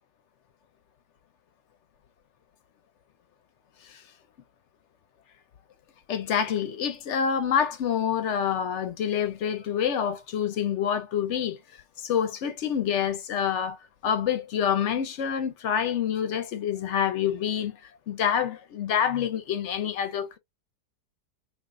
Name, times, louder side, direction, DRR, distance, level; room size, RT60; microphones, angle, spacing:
voice 1, 6.1-11.6 12.0-13.8 14.0-17.8 18.1-20.4, left 8 dB, 60° left, 0.8 m, -27 dB
4.4 x 2.9 x 2.6 m
omnidirectional pair, 1.8 m